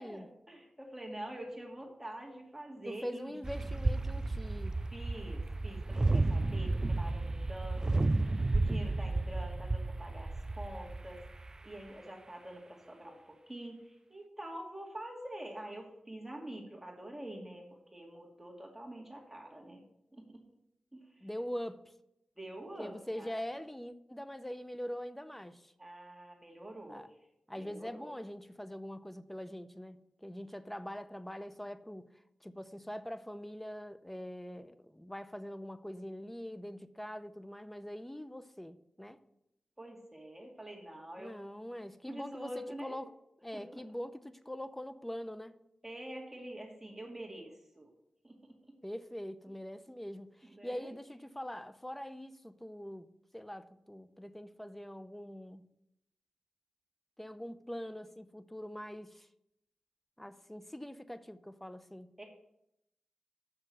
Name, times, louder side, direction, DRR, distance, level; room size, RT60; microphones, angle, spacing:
voice 1, 0.0-3.4 4.9-8.1 8.5-11.2 11.6-19.8 20.1-20.4 20.9-21.3 22.4-23.3 25.8-27.0 27.6-28.1 39.8-41.4 42.1-43.0 43.5-43.8 45.8-47.9 48.2-48.8 50.5-50.9 62.2-62.3, right 1 dB, 15° right, 2.1 m, -46 dB
voice 2, 2.8-4.8 21.2-21.9 22.8-25.7 26.9-27.1 27.5-39.2 41.2-43.1 43.4-45.6 48.8-55.7 57.2-59.3 60.2-62.2, equal, 10° left, 0.6 m, -43 dB
sound 1, 3.4-11.6, right 2 dB, 30° right, 0.4 m, -32 dB
7.8 x 6.2 x 7.6 m
wide cardioid pair, 70°, 2 cm